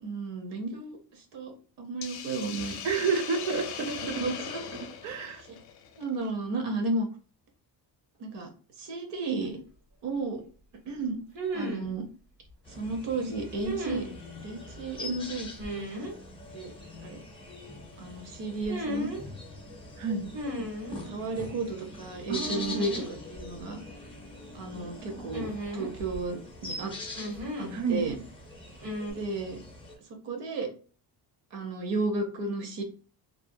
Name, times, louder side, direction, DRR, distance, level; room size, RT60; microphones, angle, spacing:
voice 1, 0.0-1.0 1.3-2.8 4.2-4.6 6.0-7.1 8.2-8.5 8.8-9.6 10.0-10.4 10.9-11.2 11.5-12.0 12.7-14.1 14.4-15.5 16.5-16.7 17.0-17.2 18.0-19.1 21.1-23.8 24.5-26.9 27.6-28.2 29.1-29.6 30.1-30.7 31.5-32.8, right 3 dB, 70° right, 4 dB, 0.8 m, -33 dB
Hiss, 2.0-6.3, left 8 dB, 65° left, 0.5 m, -39 dB
voice 2, 2.8-4.2 5.0-5.4 20.0-20.3 22.3-22.8 27.7-28.1, right 5 dB, 45° right, 6 dB, 0.5 m, -30 dB
sound 1, 9.4-9.5 11.3-11.9 13.6-14.1 15.6-16.1 18.6-19.2 20.3-21.0 22.4-23.1 23.4-23.5 25.3-26.2 27.1-27.8 28.8-29.1, equal, 85° right, 1.4 m, -35 dB
sound 2, 12.6-29.9, left 2 dB, 15° left, 0.4 m, -43 dB
2.6 x 2.1 x 2.6 m, 0.39 s
cardioid pair, 175°, 42 cm